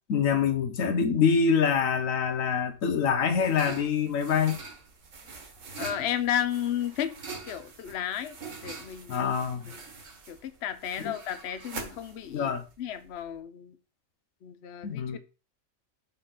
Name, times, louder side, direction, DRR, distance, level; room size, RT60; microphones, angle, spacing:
voice 1, 0.1-4.6 9.1-9.7 11.0-11.1 12.3-12.6 14.8-15.2, left 6 dB, 85° left, 1.3 m, -25 dB
sound 1, 2.8-13.4, right 4 dB, 70° right, 1.7 m, -44 dB
voice 2, 5.8-7.2 7.5-8.4 8.6-9.3 10.3-12.5 12.8-13.8 14.4-15.2, left 10 dB, 60° left, 0.8 m, -33 dB
5.5 x 3.3 x 5.7 m
omnidirectional pair, 1.4 m